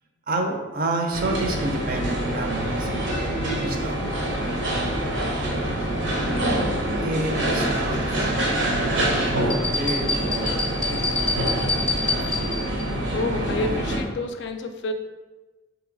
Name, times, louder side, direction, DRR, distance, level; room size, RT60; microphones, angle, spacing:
voice 1, 0.3-4.1 7.0-9.4 9.8-11.2, right 2 dB, 50° right, 3 dB, 0.5 m, -30 dB
sound 1, 1.1-14.0, right 1 dB, 75° right, 0.8 m, -25 dB
sound 2, 9.5-12.8, left 3 dB, 5° left, 0.5 m, -27 dB
voice 2, 13.1-14.9, left 2 dB, 65° left, 6 dB, 0.4 m, -29 dB
3.0 x 2.9 x 3.8 m, 1.2 s
head